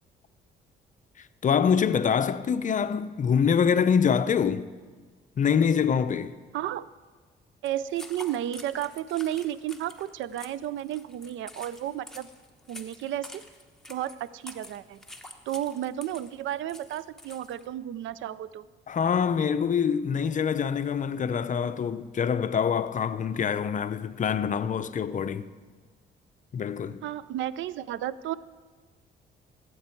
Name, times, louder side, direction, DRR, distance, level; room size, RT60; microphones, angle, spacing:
voice 1, 1.2-4.7 5.4-6.4 18.9-25.5 26.5-27.0, left 7 dB, 40° left, 0.5 m, -25 dB
voice 2, 6.5-6.9 7.6-12.3 12.7-13.4 13.9-15.0 15.5-18.7 27.0-28.4, right 12 dB, 75° right, 0.4 m, -32 dB
sound 1, 7.6-17.7, left 1 dB, ahead, 1.0 m, -48 dB
15.5 x 7.9 x 4.5 m
cardioid pair, 90°, 20 cm